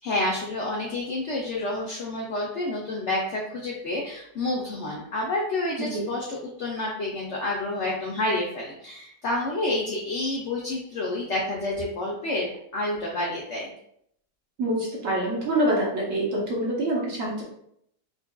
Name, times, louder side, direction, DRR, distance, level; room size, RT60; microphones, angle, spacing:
voice 1, 0.0-13.7, left 2 dB, 70° left, -2 dB, 0.6 m, -29 dB
voice 2, 14.6-17.4, right 1 dB, 55° right, -4 dB, 1.2 m, -26 dB
4.0 x 2.5 x 2.3 m, 0.71 s
omnidirectional pair, 1.8 m